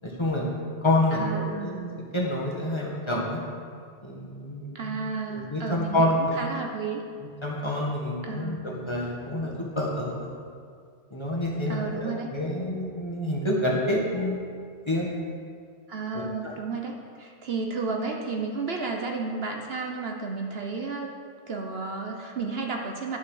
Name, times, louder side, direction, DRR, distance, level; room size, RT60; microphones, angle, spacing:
voice 1, 0.0-0.5 0.8-3.4 4.0-5.0 5.3-6.2 7.4-10.3 11.1-14.4 14.9-15.1 16.1-16.6, left 1 dB, 25° left, -3 dB, 1.7 m, -28 dB
voice 2, 1.1-2.0 4.7-6.1 6.4-7.0 8.2-8.7 11.7-12.3 15.9-21.1 21.5-23.2, right 4 dB, 60° right, 2 dB, 1.1 m, -32 dB
11.0 x 6.3 x 6.4 m, 2.2 s
omnidirectional pair, 1.2 m